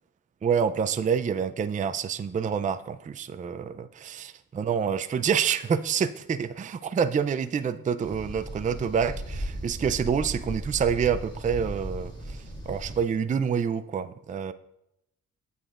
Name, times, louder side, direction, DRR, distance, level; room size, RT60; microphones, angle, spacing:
voice 1, 0.4-14.5, right 7 dB, 25° right, 11 dB, 0.3 m, -27 dB
sound 1, 8.0-13.0, equal, 10° left, 1.9 m, -36 dB
7.6 x 6.7 x 2.4 m, 0.82 s
cardioid pair, 60°, 37 cm